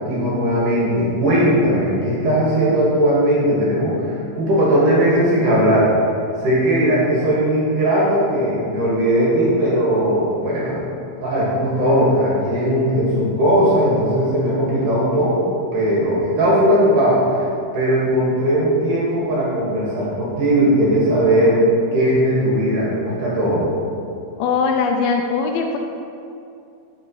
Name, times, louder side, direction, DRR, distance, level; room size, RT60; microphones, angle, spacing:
voice 1, 0.0-5.9 6.4-10.8 11.2-17.4 17.7-23.7, equal, 60° right, -7 dB, 2.9 m, -18 dB
voice 2, 24.4-25.8, left 5 dB, 80° left, 3 dB, 2.3 m, -20 dB
9.1 x 6.2 x 3.1 m, 2.6 s
omnidirectional pair, 4.6 m